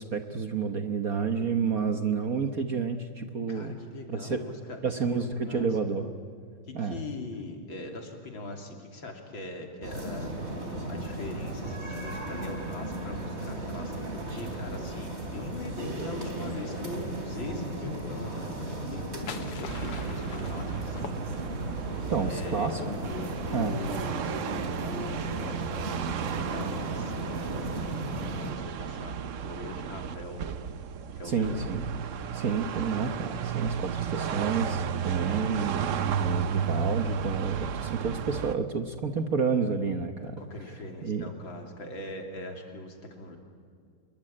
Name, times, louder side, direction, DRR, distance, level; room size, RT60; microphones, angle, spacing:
voice 1, 0.0-3.8 4.1-4.4 4.8-6.1 6.7-7.0 22.1-22.8 23.5-23.8 31.2-31.8 32.3-40.4 41.0-41.2, right 5 dB, 50° right, 7 dB, 1.3 m, -30 dB
voice 2, 3.5-5.7 6.7-10.3 10.9-13.9 14.3-21.2 22.2-22.7 23.1-28.0 28.4-30.4 31.1-31.6 40.4-43.4, left 2 dB, 60° left, 3 dB, 3.6 m, -42 dB
sound 1, 9.8-28.5, right 1 dB, 30° right, 3.7 m, -35 dB
sound 2, 18.7-21.8, left 7 dB, 90° left, 2.3 m, -43 dB
sound 3, 19.7-38.6, right 7 dB, 80° right, 0.6 m, -33 dB
27.0 x 22.0 x 8.6 m, 2.2 s
omnidirectional pair, 2.4 m